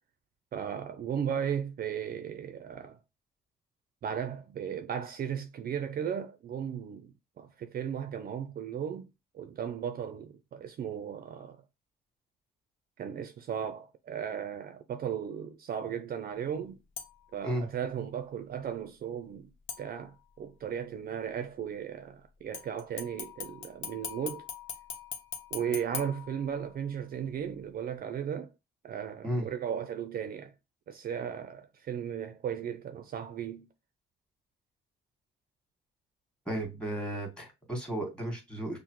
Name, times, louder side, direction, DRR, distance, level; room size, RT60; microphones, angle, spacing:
voice 1, 0.5-3.0 4.0-11.6 13.0-16.8 17.3-19.5 19.8-24.4 25.5-28.5 28.8-30.5 30.9-33.7, right 8 dB, 50° right, 0.4 m, -36 dB
sound 1, 17.0-17.4 19.7-20.4 22.5-26.9 27.4-27.5, left 7 dB, 75° left, 0.9 m, -42 dB
voice 2, 36.4-38.8, right 1 dB, 5° left, 1.6 m, -34 dB
5.5 x 2.0 x 3.0 m
cardioid pair, 90°, 20 cm